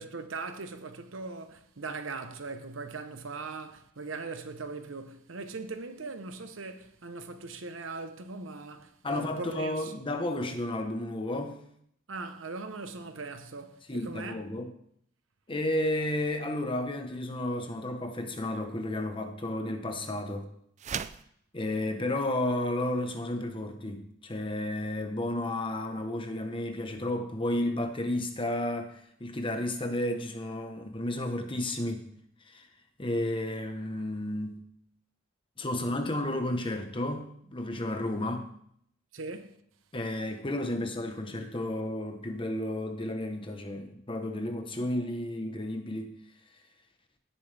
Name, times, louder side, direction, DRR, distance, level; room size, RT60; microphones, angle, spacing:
voice 1, 0.0-9.9 10.2-10.5 12.1-14.4 39.1-39.6, right 3 dB, 80° right, 1.0 m, -40 dB
voice 2, 9.0-11.6 13.9-14.7 15.5-20.5 21.5-32.1 32.5-32.7 33.0-34.6 35.6-38.5 39.9-46.1, left 1 dB, 25° left, 1.1 m, -32 dB
sound 1, 20.8-21.3, right 7 dB, 35° right, 0.4 m, -35 dB
17.0 x 7.4 x 3.4 m
head